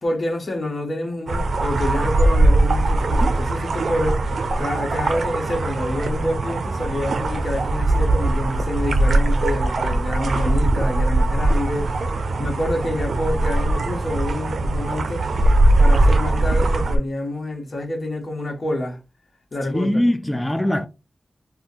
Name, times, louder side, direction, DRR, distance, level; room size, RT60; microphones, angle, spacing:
voice 1, 0.0-4.3 4.6-15.3 15.8-19.0 19.5-20.0, left 1 dB, 55° left, 1.1 m, -27 dB
sound 1, 1.3-17.0, right 2 dB, 80° right, 0.4 m, -20 dB
voice 2, 19.6-20.9, left 1 dB, 10° left, 0.3 m, -21 dB
2.6 x 2.4 x 3.8 m
cardioid pair, 65°, 0 cm